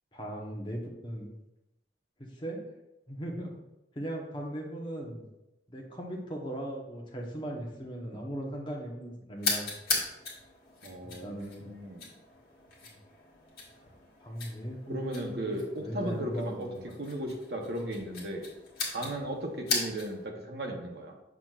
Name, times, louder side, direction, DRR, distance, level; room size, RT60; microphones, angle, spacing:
voice 1, 0.1-1.3 2.2-2.6 3.1-3.5 3.9-5.2 5.7-9.7 11.0-11.7 12.9-13.0 14.2-16.9 19.0-19.2, right 1 dB, 25° left, -1 dB, 1.0 m, -38 dB
sound 1, 9.4-20.3, left 3 dB, 55° left, 1.6 m, -38 dB
voice 2, 10.8-12.1 14.9-16.7 17.0-18.4 18.9-21.1, right 1 dB, 60° right, 2 dB, 1.0 m, -36 dB
7.1 x 6.1 x 2.4 m, 0.92 s
head